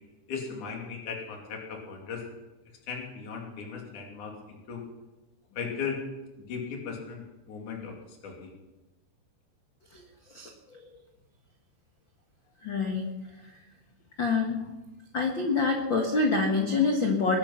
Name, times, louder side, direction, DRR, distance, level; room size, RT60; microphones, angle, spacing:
voice 1, 0.3-2.2 2.9-4.8 5.5-6.0 6.5-8.5, left 6 dB, 50° left, 0 dB, 3.9 m, -37 dB
voice 2, 12.6-13.1 14.2-14.7 15.1-17.4, left 4 dB, 85° left, 2 dB, 1.0 m, -26 dB
21.5 x 11.5 x 5.9 m, 1.1 s
omnidirectional pair, 5.0 m